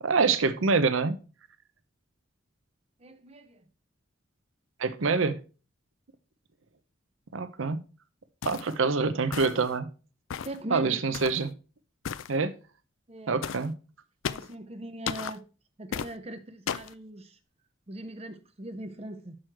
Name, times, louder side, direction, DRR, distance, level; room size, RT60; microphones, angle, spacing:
voice 1, 0.0-1.2 4.8-5.3 7.3-7.8 8.5-9.9 10.7-11.5 12.3-12.5 13.3-13.7, right 4 dB, 80° right, 0.7 m, -25 dB
voice 2, 3.0-3.6 10.4-11.4 13.1-13.4 14.3-15.5 15.8-17.4 17.9-19.4, right 1 dB, 30° right, 0.6 m, -41 dB
sound 1, 8.4-8.7 9.3-9.7 10.3-10.6 11.1-11.4 12.0-12.3 13.4-13.7 14.2-14.5 15.1-15.4 15.9-16.1 16.7-16.9, left 7 dB, 80° left, 0.4 m, -34 dB
6.3 x 6.2 x 4.5 m
head